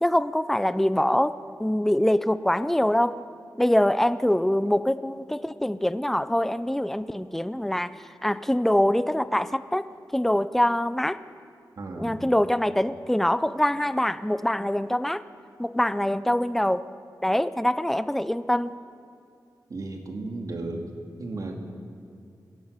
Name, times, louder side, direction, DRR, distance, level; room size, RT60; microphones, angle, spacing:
voice 1, 0.0-3.1 3.6-9.9 10.1-11.2 12.0-15.2 15.6-16.8 17.2-18.7, left 1 dB, 5° left, 14 dB, 0.4 m, -24 dB
voice 2, 11.8-12.2 19.7-20.9 21.2-21.5, right 2 dB, 50° right, 3 dB, 2.3 m, -34 dB
23.0 x 17.0 x 6.7 m, 2.4 s
wide cardioid pair, 180°, 7 cm